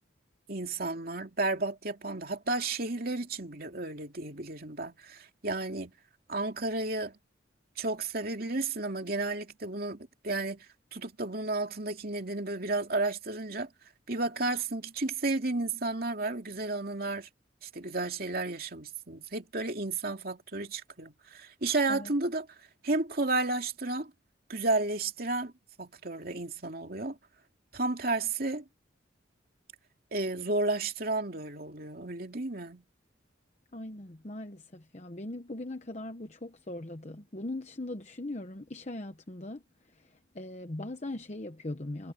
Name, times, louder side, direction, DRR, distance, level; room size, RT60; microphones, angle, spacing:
voice 1, 0.5-5.9 6.3-7.2 7.8-10.7 10.9-13.7 14.1-17.3 17.6-22.5 22.8-24.1 24.5-25.5 25.8-27.2 27.7-28.6 30.1-32.8, right 2 dB, 50° right, 2.7 m, -32 dB
voice 2, 33.7-39.6 40.0-40.1 40.3-42.1, left 1 dB, 35° left, 1.0 m, -40 dB
head